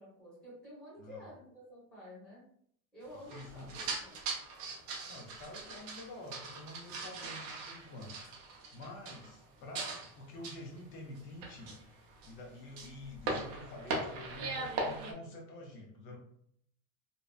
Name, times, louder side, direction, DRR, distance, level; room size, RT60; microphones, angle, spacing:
voice 1, 0.0-2.4 2.9-4.4, left 1 dB, ahead, -10 dB, 1.0 m, -51 dB
voice 2, 3.3-3.8 5.1-16.2, left 2 dB, 30° left, 0 dB, 0.5 m, -48 dB
sound 1, 3.3-9.5 9.8-10.1 10.4-10.8 11.2-12.4 12.7-15.1, right 3 dB, 35° right, 0.5 m, -40 dB
2.6 x 2.1 x 2.3 m, 0.67 s
supercardioid pair, 145°, 43 cm